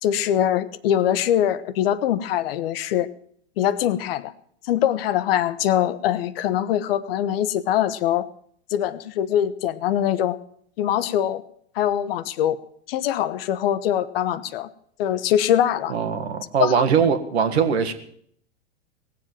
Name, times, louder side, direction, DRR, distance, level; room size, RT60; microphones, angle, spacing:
voice 1, 0.0-3.1 3.6-4.3 4.7-8.3 8.7-10.4 10.8-11.4 11.8-12.6 12.9-14.7 15.0-15.9 16.6-16.8, left 11 dB, 60° left, 15 dB, 1.0 m, -23 dB
voice 2, 15.9-17.9, right 7 dB, 75° right, 7 dB, 1.8 m, -21 dB
18.0 x 7.7 x 8.9 m, 0.65 s
hypercardioid pair, 100°, 33 cm